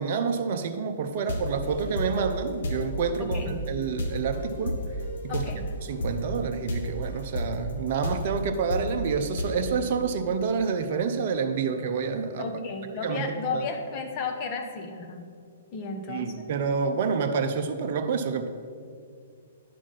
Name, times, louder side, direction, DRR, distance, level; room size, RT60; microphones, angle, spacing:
voice 1, 0.0-4.8 5.3-5.4 5.8-12.5 13.0-13.6 16.1-18.5, right 5 dB, 50° right, 7 dB, 0.6 m, -28 dB
sound 1, 1.2-9.4, equal, 60° left, 1.1 m, -32 dB
voice 2, 3.2-3.5 5.3-5.6 12.4-15.3 15.7-16.5, left 4 dB, 35° left, 4 dB, 1.0 m, -33 dB
9.8 x 6.0 x 4.1 m, 2.3 s
figure-of-eight pair, 115°, 0 cm